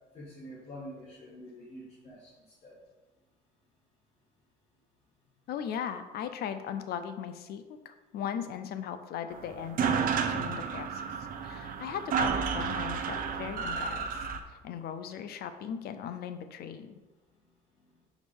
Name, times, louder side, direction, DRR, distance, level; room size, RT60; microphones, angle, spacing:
voice 1, 0.1-2.8 17.8-17.9, equal, 40° left, -7 dB, 2.1 m, -47 dB
voice 2, 5.5-11.0 11.4-17.0, left 8 dB, 70° left, 9 dB, 0.7 m, -38 dB
sound 1, 9.3-9.4 9.6-14.4, right 6 dB, 55° right, 0.8 m, -31 dB
5.3 x 5.2 x 5.2 m, 1.1 s
cardioid pair, 110°, 17 cm